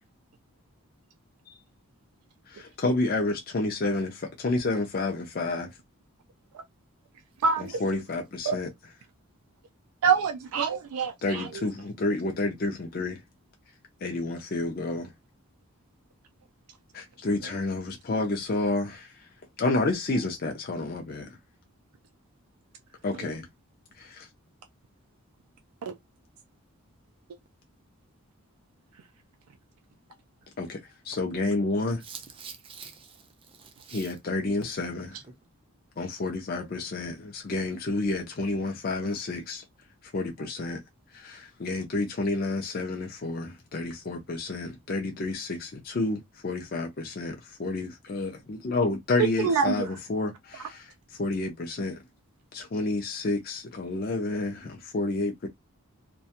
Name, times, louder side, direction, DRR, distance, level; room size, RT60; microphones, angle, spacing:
voice 1, 2.5-5.7 7.8-8.7 11.2-13.2 14.0-15.1 16.9-19.1 19.6-21.4 23.0-23.5 24.0-24.3 30.6-30.8 31.0-32.0 33.9-35.2 36.0-39.6 40.1-40.8 41.1-50.9 51.2-52.0 52.5-55.5, left 2 dB, 40° left, 0.4 m, -30 dB
voice 2, 7.4-7.8 8.5-8.6 10.0-11.6 25.9-26.0 49.2-49.9, right 6 dB, 85° right, 0.4 m, -26 dB
voice 3, 32.0-34.1 35.2-35.3, right 6 dB, 25° right, 0.5 m, -45 dB
2.4 x 2.2 x 2.8 m
head